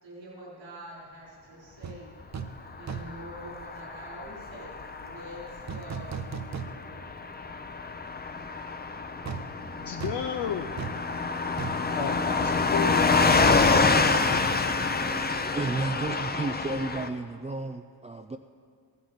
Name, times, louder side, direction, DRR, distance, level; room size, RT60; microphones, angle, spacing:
voice 1, 0.0-2.1 2.7-6.3, right 1 dB, 80° right, -6 dB, 4.6 m, -45 dB
sound 1, 1.8-2.0 2.3-2.6 2.9-3.3 5.7-7.1 7.5-7.6 9.2-12.9 13.2-13.3, right 6 dB, 40° right, 0.8 m, -38 dB
Car passing by / Truck, 2.7-17.1, left 4 dB, 20° left, 0.7 m, -27 dB
voice 2, 9.8-11.0 11.9-14.5, left 8 dB, 65° left, 4 dB, 0.7 m, -34 dB
voice 3, 15.1-18.4, right 3 dB, 15° right, 6 dB, 0.4 m, -33 dB
15.0 x 12.0 x 5.7 m, 2.2 s
cardioid pair, 95°, 44 cm